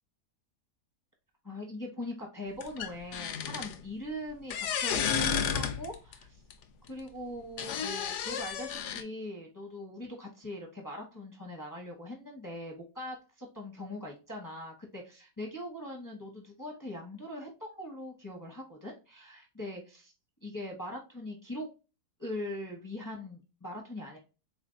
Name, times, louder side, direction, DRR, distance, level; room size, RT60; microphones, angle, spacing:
voice 1, 1.4-6.4 6.9-20.1 20.4-21.7 22.2-24.2, left 1 dB, 25° left, 0 dB, 0.4 m, -41 dB
sound 1, 2.6-3.8 4.5-6.1 6.5-6.6 7.6-9.0, left 7 dB, 75° left, 0.6 m, -32 dB
3.7 x 3.3 x 2.5 m, 0.31 s
omnidirectional pair, 1.8 m